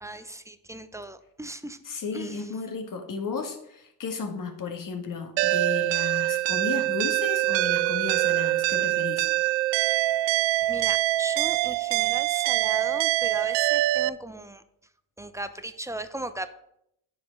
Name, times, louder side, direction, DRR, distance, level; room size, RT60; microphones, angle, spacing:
voice 1, 0.0-1.8 2.1-2.5 10.6-14.6 15.2-16.5, right 1 dB, 5° right, 11 dB, 0.7 m, -37 dB
voice 2, 1.9-9.3, left 5 dB, 40° left, 5 dB, 1.8 m, -34 dB
sound 1, 5.4-14.1, right 16 dB, 70° right, 0.5 m, -24 dB
9.5 x 5.1 x 5.4 m, 0.77 s
supercardioid pair, 70°, 49 cm